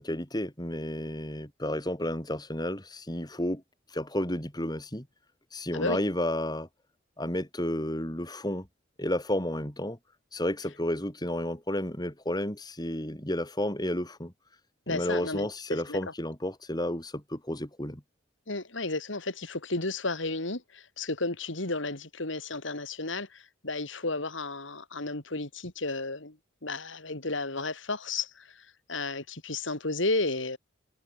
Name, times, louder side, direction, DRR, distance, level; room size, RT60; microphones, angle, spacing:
voice 1, 0.0-3.6 3.9-5.1 5.5-6.7 7.2-8.7 9.0-10.0 10.3-14.3 14.9-18.0, left 1 dB, 20° left, 3.8 m, -31 dB
voice 2, 14.9-16.0 18.5-26.4 26.6-28.6 28.9-30.6, left 3 dB, 70° left, 3.1 m, -33 dB
head